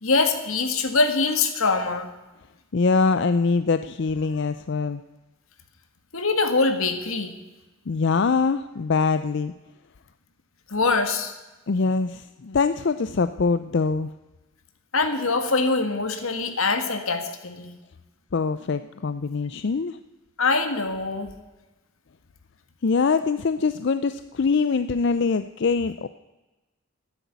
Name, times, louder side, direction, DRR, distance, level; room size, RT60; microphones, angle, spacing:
voice 1, 0.0-2.1 6.1-7.3 10.7-11.3 14.9-17.7 20.4-21.3, left 3 dB, 80° left, 7 dB, 1.9 m, -23 dB
voice 2, 2.7-5.0 7.9-9.5 11.7-14.1 18.3-20.0 22.8-26.1, left 4 dB, 55° left, 11 dB, 0.5 m, -23 dB
13.5 x 10.0 x 8.2 m, 1.1 s
head